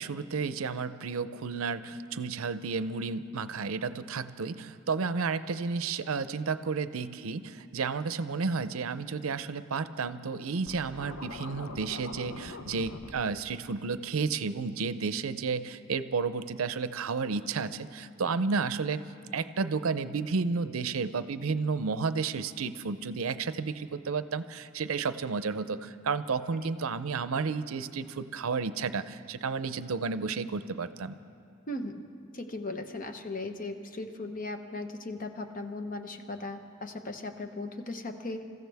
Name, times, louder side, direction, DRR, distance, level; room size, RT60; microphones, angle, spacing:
voice 1, 0.0-19.0 19.3-31.2, right 4 dB, 80° right, 13 dB, 0.6 m, -32 dB
Scratching (performance technique), 10.7-13.2, left 3 dB, 80° left, 0.9 m, -43 dB
voice 2, 32.3-38.4, left 2 dB, 40° left, 6 dB, 1.0 m, -37 dB
27.0 x 15.0 x 3.5 m, 2.7 s
head